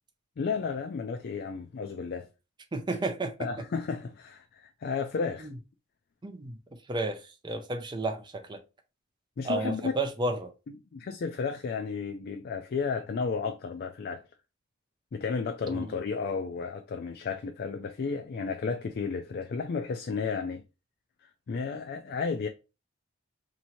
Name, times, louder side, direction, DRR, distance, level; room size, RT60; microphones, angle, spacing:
voice 1, 0.4-2.3 3.4-5.5 9.4-9.9 10.9-14.2 15.1-20.6 21.2-22.5, left 5 dB, 50° left, 0.4 m, -33 dB
voice 2, 2.7-3.5 5.4-5.6 6.2-6.6 6.9-8.6 9.4-10.5 15.7-15.9, right 2 dB, 20° right, 0.5 m, -32 dB
2.9 x 2.7 x 4.2 m
head